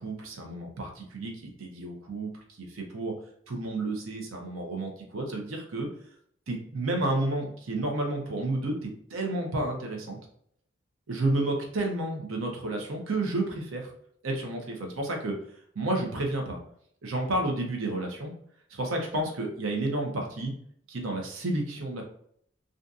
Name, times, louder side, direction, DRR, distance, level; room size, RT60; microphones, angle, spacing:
voice 1, 0.0-3.1 3.5-5.9 6.5-10.2 11.1-13.9 14.2-15.3 15.7-16.6 17.0-18.3 18.7-20.5 20.9-22.0, right 2 dB, 90° right, 2 dB, 0.7 m, -31 dB
2.6 x 2.5 x 2.3 m, 0.65 s
head